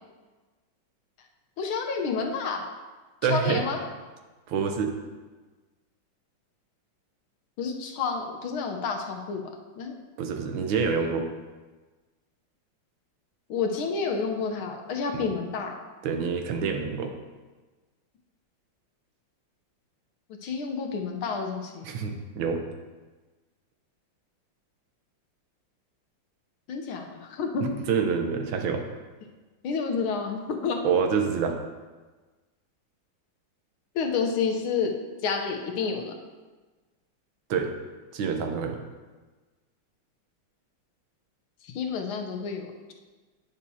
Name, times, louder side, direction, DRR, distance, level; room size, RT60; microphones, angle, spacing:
voice 1, 1.6-2.7 3.3-3.8 7.6-9.4 9.8-10.0 13.5-15.8 20.4-21.9 26.7-27.7 29.6-30.8 33.9-34.9 35.2-36.1 41.6-42.9, left 5 dB, 85° left, 3 dB, 1.6 m, -29 dB
voice 2, 3.2-3.6 4.5-4.9 10.2-11.3 15.1-15.3 16.0-17.1 21.8-22.6 27.6-28.9 30.8-31.6 37.5-37.7 38.1-38.8, right 6 dB, 75° right, 4 dB, 1.5 m, -27 dB
9.3 x 6.7 x 2.8 m, 1.3 s
omnidirectional pair, 2.2 m